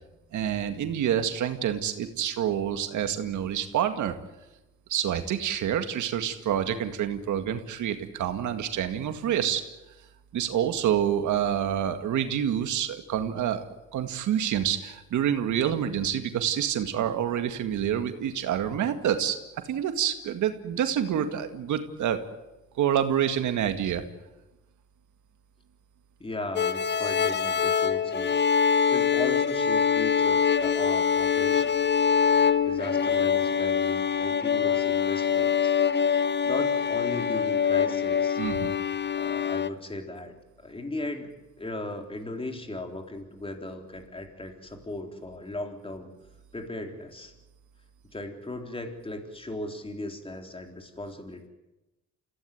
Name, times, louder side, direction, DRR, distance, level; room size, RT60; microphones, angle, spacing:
voice 1, 0.3-4.2 4.9-9.6 10.3-19.4 19.7-22.2 22.8-24.0 38.4-38.8, right 9 dB, 75° right, 8 dB, 2.1 m, -27 dB
voice 2, 26.2-28.5 28.9-31.7 32.6-35.7 36.4-38.4 39.2-40.3 40.6-41.3 41.6-46.1 46.5-47.3 48.1-51.5, left 2 dB, 20° left, 4 dB, 3.8 m, -37 dB
sound 1, 26.6-39.7, left 7 dB, 35° left, 1.0 m, -24 dB
26.5 x 16.5 x 9.3 m, 1.0 s
cardioid pair, 90°, 30 cm